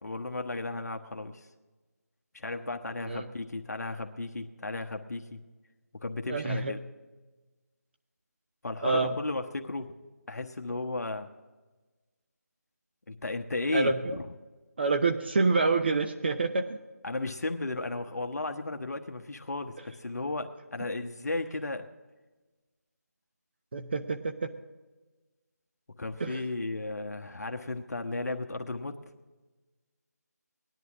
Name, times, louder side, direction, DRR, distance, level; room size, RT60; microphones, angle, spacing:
voice 1, 0.0-1.5 2.3-5.4 6.0-6.8 8.6-9.9 10.3-11.3 13.1-14.2 17.0-21.9 26.0-29.0, left 2 dB, 70° left, 5 dB, 1.1 m, -34 dB
voice 2, 6.3-6.8 8.8-9.2 13.7-14.2 14.8-16.8 23.7-24.5 26.2-26.4, right 3 dB, 40° right, 7 dB, 0.7 m, -27 dB
19.0 x 11.0 x 3.6 m, 1.2 s
figure-of-eight pair, 165°, 9 cm